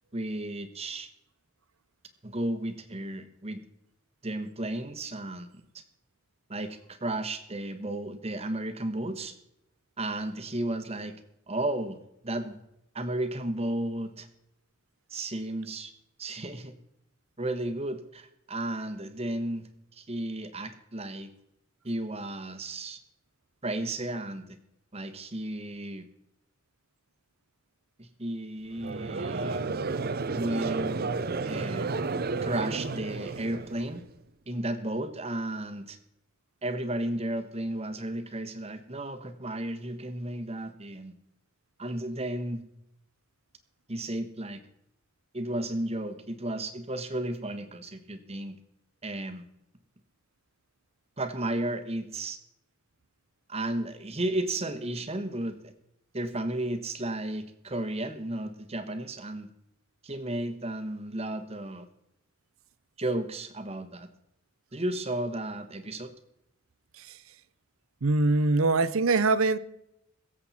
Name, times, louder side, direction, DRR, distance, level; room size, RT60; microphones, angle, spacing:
voice 1, 0.1-1.1 2.2-3.6 4.2-5.8 6.5-9.3 10.0-11.1 11.5-12.6 12.9-14.3 15.1-15.9 16.2-16.7 17.4-21.3 21.8-23.0 23.6-24.5 24.9-26.1 28.0-29.6 30.2-31.9 32.4-34.0 34.5-36.0 36.6-41.1 41.8-42.6 43.9-44.6 45.3-48.6 49.0-49.4 51.2-52.4 53.5-55.7 56.1-59.5 60.0-61.9 63.0-64.1 64.7-66.1, right 1 dB, 30° right, 1.2 m, -33 dB
Conversation / Crowd, 28.8-34.1, right 3 dB, 45° right, 0.6 m, -32 dB
voice 2, 68.0-69.6, right 3 dB, 85° right, 0.7 m, -23 dB
23.0 x 7.7 x 4.3 m
head